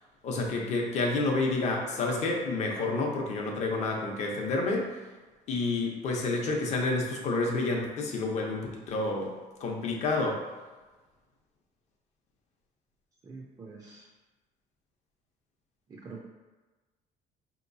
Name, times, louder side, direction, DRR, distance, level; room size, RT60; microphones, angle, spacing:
voice 1, 0.2-4.9 5.5-9.3 9.6-10.4, left 3 dB, 50° left, 0 dB, 0.7 m, -29 dB
voice 2, 13.2-14.1 15.9-16.2, right 4 dB, 20° right, -2 dB, 0.4 m, -45 dB
5.2 x 2.9 x 2.6 m, 1.2 s
cardioid pair, 165°, 15 cm